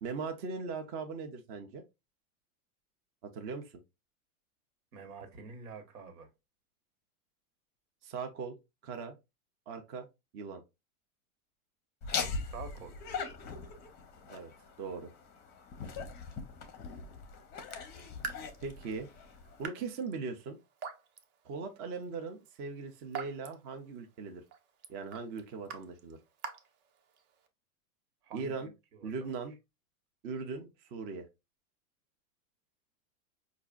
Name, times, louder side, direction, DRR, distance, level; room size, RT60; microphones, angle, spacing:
voice 1, 0.0-1.8 3.2-3.7 8.0-8.6 8.8-9.2 9.7-10.1 10.3-10.6 14.3-14.5 14.8-15.1 18.6-19.1 19.6-20.6 21.4-24.4 24.9-26.2 28.3-28.7 29.0-29.6 30.2-31.3, right 4 dB, 25° right, 0.4 m, -39 dB
voice 2, 4.9-6.3 12.5-13.0 28.2-29.1, right 5 dB, 85° right, 1.3 m, -47 dB
Laughter, 12.0-19.7, left 5 dB, 25° left, 0.6 m, -41 dB
Raindrop / Drip, 17.6-27.5, right 6 dB, 50° right, 0.7 m, -48 dB
4.7 x 2.4 x 2.3 m
supercardioid pair, 140°, 44 cm